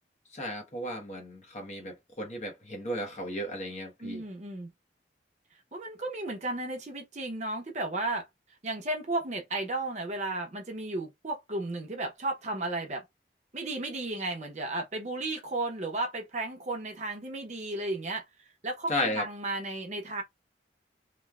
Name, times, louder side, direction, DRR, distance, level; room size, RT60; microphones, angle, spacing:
voice 1, 0.3-4.2 18.9-19.2, left 1 dB, 40° left, 1.0 m, -34 dB
voice 2, 4.0-4.7 5.7-8.3 8.6-13.0 13.5-18.2 18.6-20.2, right 2 dB, 40° right, 0.7 m, -34 dB
3.1 x 2.2 x 2.3 m
head